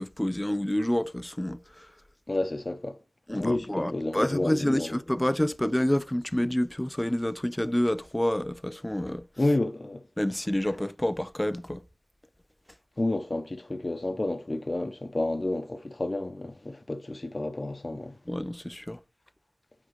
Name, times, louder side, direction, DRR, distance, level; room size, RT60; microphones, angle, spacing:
voice 1, 0.0-1.9 3.3-9.3 10.2-11.8 18.3-19.0, left 1 dB, 15° left, 0.4 m, -28 dB
voice 2, 2.3-3.0 3.3-5.0 9.4-10.0 13.0-18.2, left 2 dB, 40° left, 0.8 m, -30 dB
9.2 x 3.7 x 3.1 m
cardioid pair, 45°, 0 cm